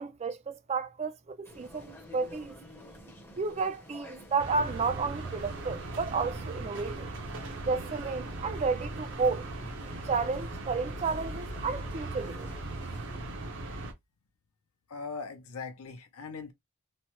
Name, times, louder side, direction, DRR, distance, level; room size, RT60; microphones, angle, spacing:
voice 1, 0.0-2.5 3.4-7.1 7.7-9.5 10.0-12.5, right 4 dB, 30° right, 0.3 m, -32 dB
sound 1, 1.4-13.2, equal, 10° left, 0.6 m, -51 dB
sound 2, 4.4-13.9, right 2 dB, 55° right, 0.7 m, -39 dB
voice 2, 14.9-16.5, left 4 dB, 75° left, 0.6 m, -40 dB
3.0 x 2.0 x 2.8 m
head